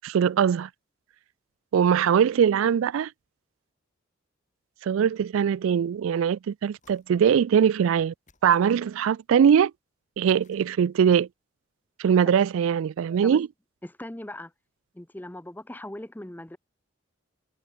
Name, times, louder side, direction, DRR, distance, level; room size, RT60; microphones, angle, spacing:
voice 1, 0.0-0.7 1.7-3.1 4.8-8.1 8.4-9.7 10.2-11.3 12.0-13.5, right 8 dB, 85° right, 0.3 m, -21 dB
sound 1, 6.8-7.6 8.3-9.2 10.3-11.2, left 4 dB, 35° left, 6.6 m, -65 dB
voice 2, 13.8-14.5 14.9-16.6, left 1 dB, 10° left, 0.6 m, -39 dB
head